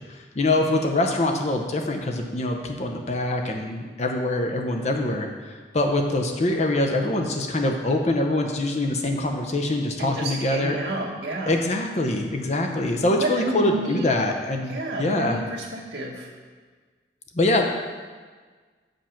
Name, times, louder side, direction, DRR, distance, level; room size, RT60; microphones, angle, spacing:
voice 1, 0.0-10.8 11.5-15.4 17.3-17.7, left 2 dB, 35° left, 2 dB, 0.6 m, -24 dB
voice 2, 10.0-11.5 13.2-14.1 14.7-16.3, right 2 dB, 80° right, -3 dB, 1.1 m, -30 dB
7.3 x 5.3 x 5.7 m, 1.5 s
head